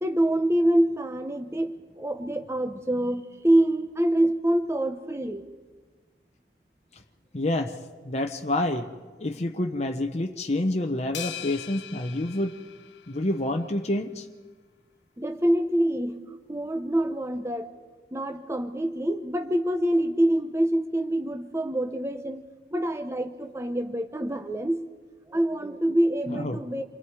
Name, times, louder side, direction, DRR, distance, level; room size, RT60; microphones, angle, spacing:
voice 1, 0.0-5.4 15.2-17.7 18.1-22.5 22.7-24.8 25.3-26.8, right 1 dB, 15° right, 7 dB, 0.8 m, -26 dB
voice 2, 7.3-7.8 8.0-8.9 9.2-12.6 13.1-14.3 26.3-26.6, left 1 dB, 40° left, 4 dB, 0.9 m, -28 dB
sound 1, 11.1-13.6, left 11 dB, 80° left, 0.8 m, -40 dB
27.5 x 22.0 x 4.8 m, 1.4 s
head